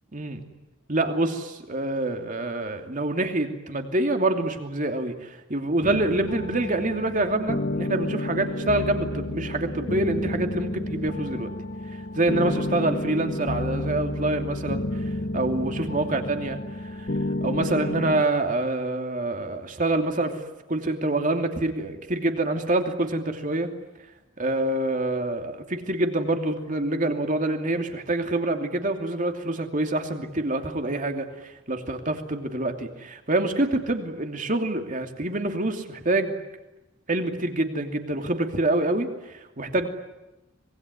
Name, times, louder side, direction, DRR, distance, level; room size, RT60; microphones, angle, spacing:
voice 1, 0.1-0.4 0.9-11.5 12.1-14.9 15.3-16.6 16.8-17.1 17.4-20.4 20.7-23.7 24.4-36.4 37.1-39.1 39.6-39.9, right 2 dB, 40° right, 5 dB, 2.8 m, -26 dB
sound 1, 5.8-18.2, left 1 dB, 45° left, 1.1 m, -30 dB
25.5 x 21.5 x 9.6 m, 0.98 s
head